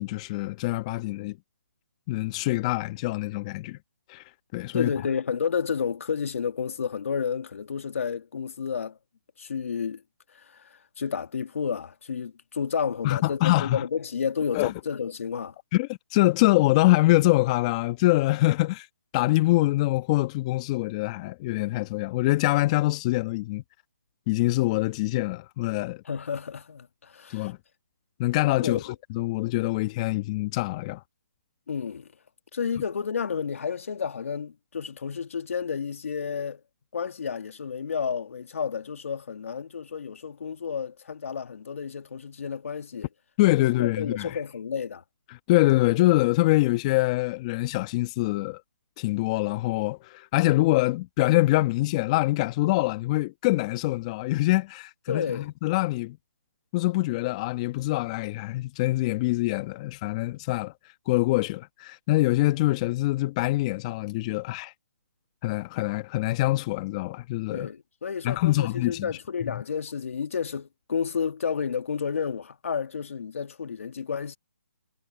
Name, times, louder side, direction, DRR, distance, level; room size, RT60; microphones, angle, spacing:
voice 1, 0.0-1.4 2.1-3.8 4.1-4.2 4.5-4.9 13.0-13.8 14.5-14.7 15.7-18.9 19.1-23.6 24.3-26.0 27.3-27.6 28.2-31.0 43.4-44.4 45.5-48.6 49.0-56.2 56.7-60.7 61.1-64.7 65.4-67.7 68.2-69.1 69.5-69.6, left 19 dB, 25° left, 1.2 m, -24 dB
voice 2, 4.7-9.0 9.4-10.0 10.3-15.6 26.1-27.5 28.6-28.8 31.7-32.1 32.5-36.6 36.9-43.1 43.6-45.0 55.1-55.5 67.5-74.4, left 6 dB, 60° left, 2.2 m, -31 dB
hypercardioid pair, 150°, 8 cm